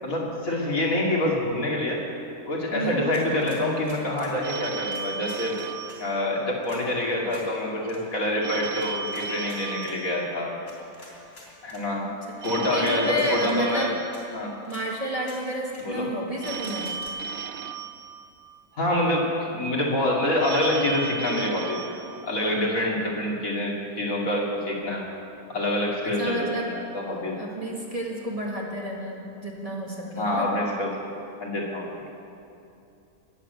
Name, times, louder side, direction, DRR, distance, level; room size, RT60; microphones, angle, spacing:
voice 1, 0.0-2.0 2.5-5.6 6.0-10.5 11.6-12.1 12.4-13.9 14.3-14.5 15.8-16.1 18.7-21.9 22.2-25.1 25.5-27.5 30.2-30.9 31.4-31.9, left 1 dB, 65° left, -3 dB, 3.0 m, -26 dB
voice 2, 2.7-3.1 12.0-12.1 12.7-13.9 14.6-17.0 26.0-26.7 27.4-30.5, equal, 25° right, -3 dB, 2.1 m, -30 dB
sound 1, 3.1-4.4 4.9-6.0 6.6-6.8 7.3-7.5 7.8-8.0 8.8-10.0 10.7-11.8 12.4-12.5 12.8-13.6 14.1-14.2 14.6-14.8 15.2-15.4 15.7-15.9 16.4-17.1, left 1 dB, 90° left, 4.0 m, -48 dB
Telephone, 4.4-6.9 8.4-10.9 12.4-14.9 16.4-18.9 20.4-22.9, right 6 dB, 60° right, 0.5 m, -36 dB
20.0 x 7.6 x 8.2 m, 2.8 s
omnidirectional pair, 1.5 m